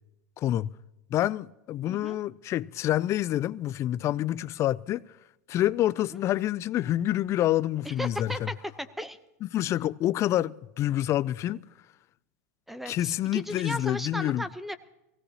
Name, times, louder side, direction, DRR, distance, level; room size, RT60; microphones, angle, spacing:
voice 1, 0.4-0.7 1.1-5.0 5.5-8.5 9.4-11.6 12.9-14.4, left 13 dB, 35° left, 0.4 m, -27 dB
voice 2, 1.9-2.2 7.8-9.2 12.7-14.8, equal, ahead, 0.8 m, -36 dB
23.0 x 17.0 x 2.9 m
supercardioid pair, 120°, 9 cm